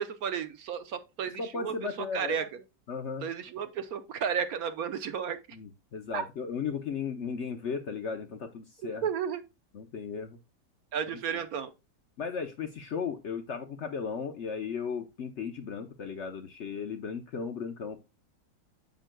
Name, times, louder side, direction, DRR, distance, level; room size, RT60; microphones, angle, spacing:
voice 1, 0.0-2.6 3.2-5.6 6.1-6.2 9.0-9.4 10.9-11.7, right 7 dB, 65° right, 1.1 m, -33 dB
voice 2, 1.4-2.4 2.9-3.3 5.5-9.1 9.7-10.4 11.3-11.4 12.2-18.0, left 6 dB, 55° left, 0.8 m, -36 dB
9.0 x 7.6 x 2.2 m
omnidirectional pair, 1.8 m